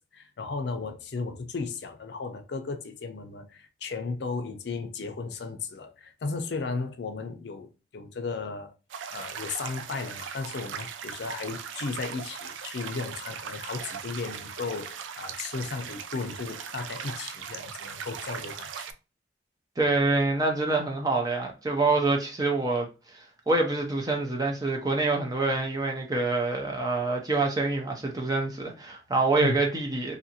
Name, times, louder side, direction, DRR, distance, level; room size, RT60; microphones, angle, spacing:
voice 1, 0.1-8.7 9.1-18.9 29.4-29.6, left 4 dB, 65° left, 0.5 m, -35 dB
sound 1, 8.9-18.9, right 7 dB, 85° right, 0.3 m, -39 dB
voice 2, 19.8-30.2, right 3 dB, 20° right, 0.5 m, -26 dB
2.7 x 2.5 x 2.7 m
head